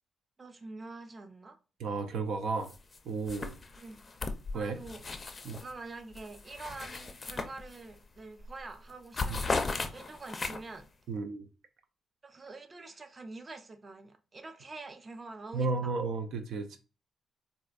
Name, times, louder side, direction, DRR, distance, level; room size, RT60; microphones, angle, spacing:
voice 1, 0.4-1.6 3.8-4.0 4.5-5.0 5.6-10.9 12.2-15.9, right 3 dB, 30° right, 0.5 m, -46 dB
voice 2, 1.8-2.7 3.0-3.6 4.5-4.8 5.4-5.6 9.3-9.4 11.1-11.5 15.5-16.8, right 4 dB, 80° right, 0.5 m, -33 dB
sound 1, 2.7-3.0 3.3-5.7 6.1-8.0 8.4-8.6 8.9-10.8, left 3 dB, 30° left, 0.5 m, -36 dB
4.1 x 2.5 x 2.4 m
cardioid pair, 95°, 0 cm